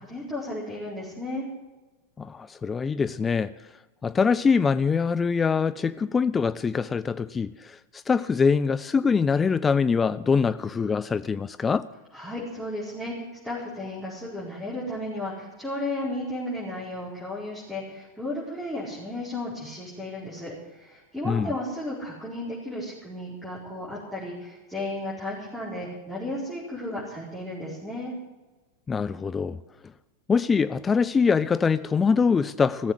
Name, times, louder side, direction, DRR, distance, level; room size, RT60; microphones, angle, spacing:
voice 1, 0.0-1.5 12.1-13.1 13.4-28.1, left 1 dB, 5° right, 4.7 m, -34 dB
voice 2, 2.2-3.5 4.0-11.9 21.2-21.5 28.9-29.6 30.3-32.9, left 5 dB, 15° left, 0.4 m, -24 dB
16.5 x 7.3 x 9.9 m
figure-of-eight pair, 90°, 0 cm